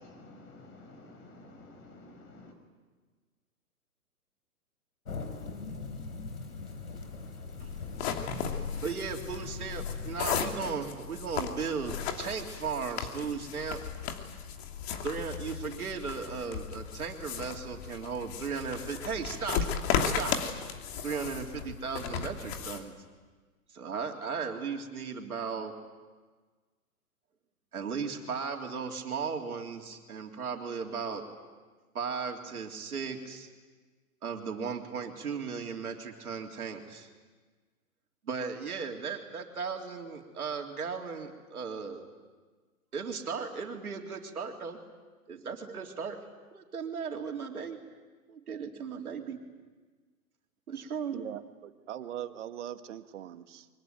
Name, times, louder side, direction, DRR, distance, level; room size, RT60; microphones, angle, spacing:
voice 1, 0.0-2.5, left 2 dB, 25° left, 6 dB, 5.9 m, -51 dB
sound 1, 5.0-10.9, left 4 dB, 80° left, 4.0 m, -42 dB
tying shoelaces, 7.6-22.8, left 7 dB, 45° left, 2.9 m, -35 dB
voice 2, 7.6-13.8 15.0-19.7 20.0-20.3 21.0-22.9 23.7-25.7 27.7-31.3 31.9-33.5 34.2-37.1 38.3-42.1 42.9-44.8 45.3-46.2 46.5-47.8 48.3-49.4 50.7-51.2, right 5 dB, 70° right, 2 dB, 3.5 m, -36 dB
voice 3, 50.7-53.7, right 11 dB, 50° right, 10 dB, 1.7 m, -41 dB
24.0 x 23.5 x 9.2 m, 1.4 s
figure-of-eight pair, 125°, 45 cm